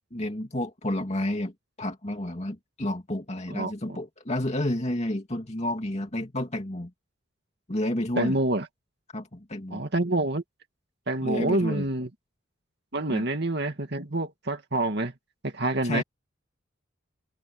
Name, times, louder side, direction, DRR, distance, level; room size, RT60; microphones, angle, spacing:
voice 1, 0.1-1.5 1.8-6.9 7.7-8.4 9.1-9.8 11.2-11.9 13.1-13.3 15.8-16.0, left 1 dB, 35° left, 2.5 m, -30 dB
voice 2, 8.2-8.7 9.7-10.4 11.1-12.1 12.9-15.1 15.4-16.0, right 2 dB, 55° right, 2.2 m, -27 dB
head